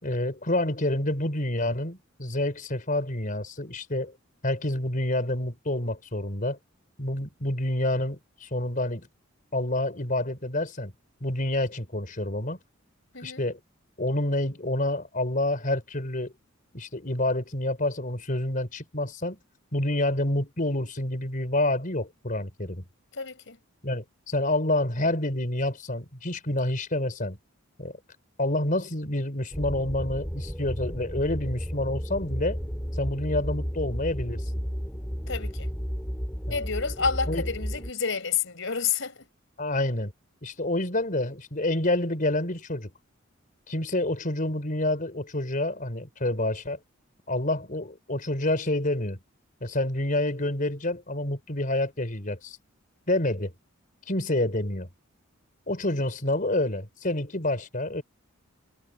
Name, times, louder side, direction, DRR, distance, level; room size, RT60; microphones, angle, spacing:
voice 1, 0.0-4.1 4.4-6.6 7.0-9.1 9.5-10.9 11.2-12.6 13.2-13.6 14.0-16.3 16.7-19.4 19.7-22.8 23.8-27.4 27.8-27.9 28.4-32.6 33.0-34.4 36.5-36.6 37.3-37.5 39.6-40.1 40.4-42.9 43.7-46.8 47.3-49.2 49.6-52.6 53.1-53.5 54.1-54.9 55.7-58.0, left 1 dB, 40° left, 4.8 m, -28 dB
voice 2, 23.1-23.6 35.3-35.7 36.5-39.2, left 6 dB, 65° left, 4.8 m, -29 dB
sound 1, 29.5-37.9, equal, 10° left, 3.4 m, -32 dB
head